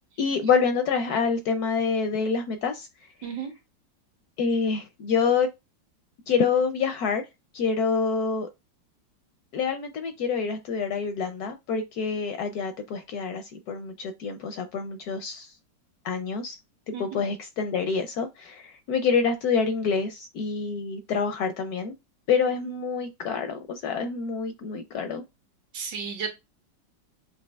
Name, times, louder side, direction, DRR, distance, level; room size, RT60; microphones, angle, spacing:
voice 1, 0.2-2.9 4.4-5.5 6.3-7.2 7.5-8.5 9.5-15.5 16.0-16.6 17.0-21.9 22.3-25.2, left 5 dB, 70° left, 0.9 m, -27 dB
voice 2, 3.2-3.5 16.9-17.2 25.7-26.3, right 6 dB, 75° right, 1.7 m, -33 dB
7.4 x 2.6 x 2.3 m
omnidirectional pair, 2.0 m